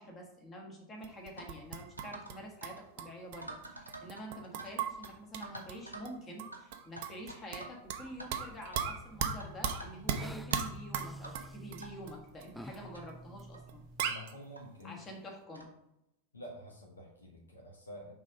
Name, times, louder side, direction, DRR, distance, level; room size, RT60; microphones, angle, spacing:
voice 1, 0.0-13.8 14.8-15.7, equal, 25° left, 0 dB, 1.5 m, -47 dB
sound 1, 1.0-2.4 2.6-5.8 6.1-6.2 6.4-8.1 8.3-12.1 12.4-12.5 12.7-12.8 13.4-13.5 13.7-13.8 14.0-14.3, right 8 dB, 50° right, 0.6 m, -36 dB
sound 2, 1.4-1.5 2.0-2.4 2.6-2.8 3.4-4.7 5.0-5.1 5.4-6.1 6.5-6.6 7.0-7.8 8.1-8.3 8.7-8.9 9.4-10.2 10.5-10.6 11.2-11.4 11.8-11.9 12.6-12.7 12.9-13.0 13.5-13.7 14.6-14.7 15.5-15.7, right 2 dB, 90° right, 0.9 m, -47 dB
sound 3, 7.8-14.1, equal, ahead, 0.3 m, -50 dB
voice 2, 14.0-15.0 16.3-18.1, left 1 dB, 75° left, -1 dB, 1.3 m, -48 dB
5.2 x 3.6 x 5.0 m, 0.84 s
figure-of-eight pair, 90°, 0 cm